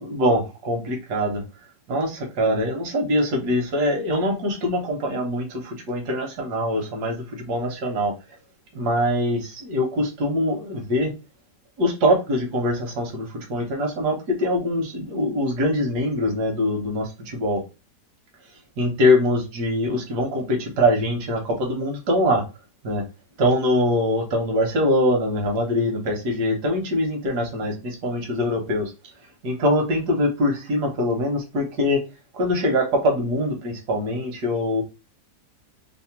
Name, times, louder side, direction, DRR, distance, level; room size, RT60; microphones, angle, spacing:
voice 1, 0.1-1.4 1.9-8.1 8.8-11.1 11.8-17.6 18.8-22.4 22.8-23.0 23.4-28.9 29.4-32.0 32.3-34.8, left 1 dB, 75° right, 0 dB, 1.6 m, -23 dB
3.4 x 2.1 x 4.2 m, 0.28 s
omnidirectional pair, 1.8 m